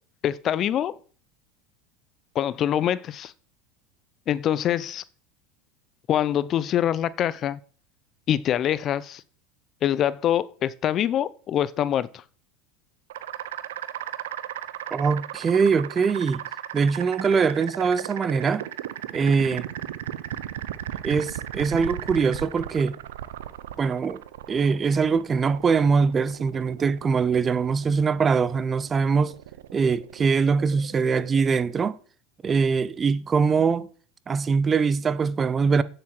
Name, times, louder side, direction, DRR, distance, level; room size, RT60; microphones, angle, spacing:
voice 1, 0.2-1.0 2.3-3.3 4.3-5.0 6.1-7.6 8.3-9.2 9.8-12.1, left 10 dB, 40° left, 0.5 m, -24 dB
sound 1, 13.1-31.8, right 12 dB, 85° right, 0.6 m, -37 dB
voice 2, 14.9-16.4 16.7-18.6 19.1-19.7 21.0-23.0 23.8-24.2 24.5-29.3 29.7-32.0 32.4-33.9 34.3-35.8, right 5 dB, 25° right, 0.6 m, -22 dB
8.7 x 7.6 x 4.5 m
supercardioid pair, 105°, 0 cm